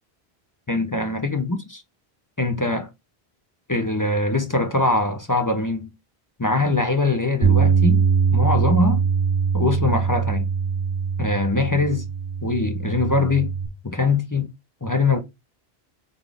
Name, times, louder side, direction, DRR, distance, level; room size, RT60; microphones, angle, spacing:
voice 1, 0.7-1.6 2.4-2.9 3.7-5.9 6.4-8.0 8.3-9.0 9.5-10.5 11.2-12.1 12.4-13.5 13.8-14.5 14.8-15.2, left 3 dB, 25° left, 0.5 m, -22 dB
Bass guitar, 7.4-13.7, right 6 dB, 35° right, 0.9 m, -22 dB
4.0 x 3.7 x 3.4 m
omnidirectional pair, 1.1 m